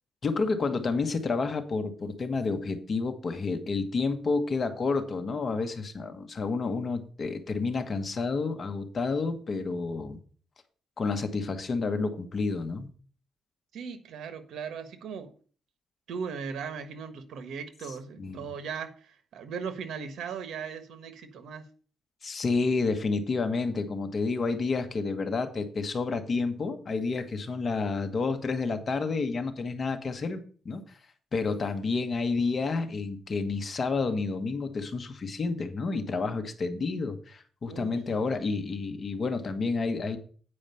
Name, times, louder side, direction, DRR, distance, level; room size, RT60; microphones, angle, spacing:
voice 1, 0.2-10.2 11.0-12.9 18.2-18.5 22.2-30.8 31.3-40.2, left 4 dB, 35° left, 7 dB, 1.3 m, -30 dB
voice 2, 13.7-15.3 16.1-21.6 37.7-38.2, right 6 dB, 75° right, 10 dB, 1.3 m, -38 dB
8.8 x 5.0 x 6.9 m, 0.42 s
cardioid pair, 125°, 0 cm